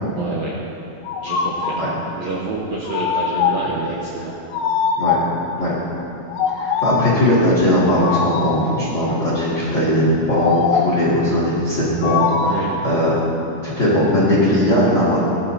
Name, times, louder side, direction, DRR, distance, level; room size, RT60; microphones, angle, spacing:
voice 1, 0.2-0.5 1.2-1.7 2.2-4.4 12.4-12.8, right 3 dB, 70° right, -5 dB, 2.2 m, -27 dB
sound 1, 1.1-1.9 2.9-3.8 4.5-5.4 6.3-7.2 8.0-8.7 10.4-11.1 12.0-12.8, left 6 dB, 90° left, 3.2 m, -22 dB
voice 2, 6.5-13.1 13.6-15.2, left 1 dB, 35° left, -8 dB, 2.0 m, -18 dB
18.0 x 11.5 x 2.8 m, 2.8 s
omnidirectional pair, 5.6 m